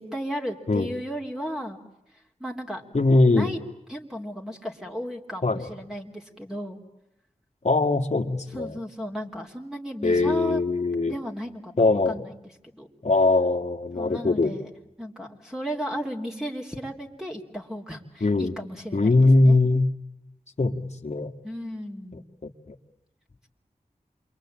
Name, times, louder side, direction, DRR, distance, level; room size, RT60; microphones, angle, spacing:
voice 1, 0.0-1.8 2.4-2.8 3.3-3.6 3.9-6.8 8.5-10.6 11.0-12.4 12.7-12.9 13.9-14.7 15.0-19.1 19.4-19.6 21.4-22.2, equal, 5° right, 0 dB, 3.4 m, -34 dB
voice 2, 2.9-3.5 5.4-5.7 7.6-8.8 10.0-11.2 11.8-12.2 13.0-14.6 18.2-18.6 18.9-19.9 20.6-21.3 22.4-22.5, left 2 dB, 50° left, 3 dB, 1.9 m, -21 dB
28.0 x 23.0 x 8.8 m, 0.88 s
wide cardioid pair, 50°, 14 cm